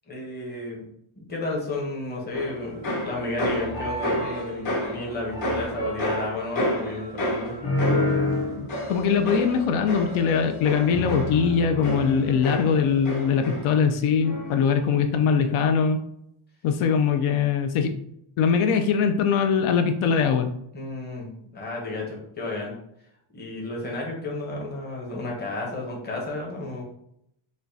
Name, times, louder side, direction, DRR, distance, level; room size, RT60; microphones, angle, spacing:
voice 1, 0.1-0.9 1.2-7.6 20.7-22.7 23.3-26.8, left 2 dB, 20° left, -2 dB, 0.8 m, -32 dB
sound 1, 2.3-13.9 14.2-14.7, left 1 dB, 45° left, 1.1 m, -29 dB
voice 2, 8.5-16.0 16.6-17.9 18.4-20.5, left 6 dB, 85° left, 7 dB, 0.5 m, -22 dB
4.9 x 2.2 x 2.7 m, 0.74 s
cardioid pair, 165°, 48 cm